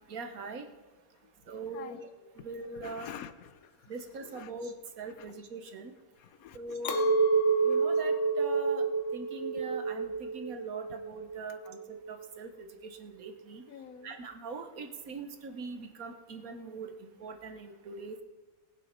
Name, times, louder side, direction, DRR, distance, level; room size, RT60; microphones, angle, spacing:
voice 1, 0.1-0.7 1.5-2.0 2.4-3.1 3.9-5.9 6.5-7.0 7.6-8.8 9.1-11.8 12.1-13.6 14.0-18.2, right 4 dB, 85° right, 7 dB, 1.6 m, -42 dB
voice 2, 1.7-2.5 2.7-4.5 5.2-5.3 6.2-7.2 13.7-14.2, left 8 dB, 85° left, 12 dB, 1.3 m, -48 dB
Chink clink, 6.8-12.2, right 4 dB, 60° left, 1.4 m, -29 dB
19.5 x 7.5 x 5.3 m, 1.2 s
omnidirectional pair, 1.5 m